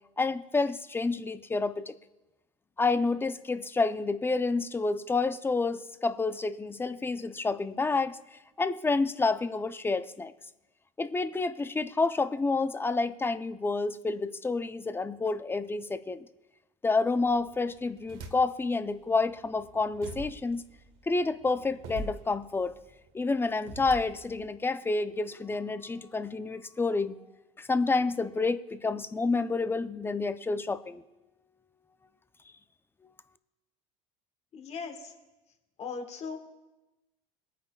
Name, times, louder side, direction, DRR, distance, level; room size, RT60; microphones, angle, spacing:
voice 1, 0.2-1.9 2.8-8.2 8.6-10.3 11.0-16.2 16.8-20.6 21.1-22.7 23.1-27.1 27.6-31.0, left 3 dB, 15° left, 12 dB, 0.7 m, -29 dB
sound 1, 17.2-18.7 19.2-24.5, right 2 dB, 65° right, 1.5 m, -45 dB
voice 2, 34.5-35.1 35.8-36.4, left 5 dB, 40° left, 4 dB, 1.8 m, -38 dB
22.0 x 9.0 x 2.4 m, 1.0 s
hypercardioid pair, 80°, 16 cm